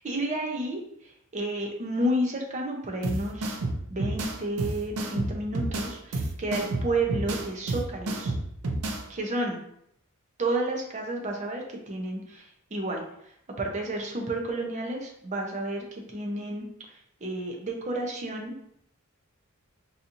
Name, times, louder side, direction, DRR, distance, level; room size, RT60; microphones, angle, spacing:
voice 1, 0.0-0.8 1.3-3.6 3.9-8.3 9.1-9.6 10.4-13.0 13.6-16.7 17.2-18.5, right 1 dB, 35° right, 1 dB, 0.6 m, -31 dB
sound 1, 3.0-9.0, right 2 dB, 90° right, 0.5 m, -30 dB
4.0 x 2.8 x 2.5 m, 0.72 s
head